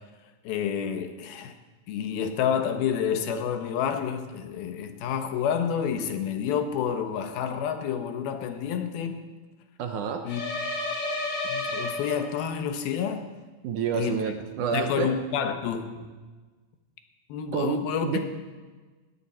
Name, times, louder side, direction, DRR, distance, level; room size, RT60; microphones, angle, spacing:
voice 1, 0.4-1.5 1.9-9.2 10.2-10.4 11.4-13.3 13.9-14.2 14.7-16.1 17.3-18.2, left 8 dB, 85° left, 2.9 m, -29 dB
voice 2, 9.8-10.2 13.6-15.1 17.5-18.2, right 6 dB, 70° right, 2.1 m, -28 dB
sound 1, 10.3-12.6, left 2 dB, 55° left, 3.3 m, -31 dB
20.0 x 14.5 x 4.3 m
omnidirectional pair, 4.3 m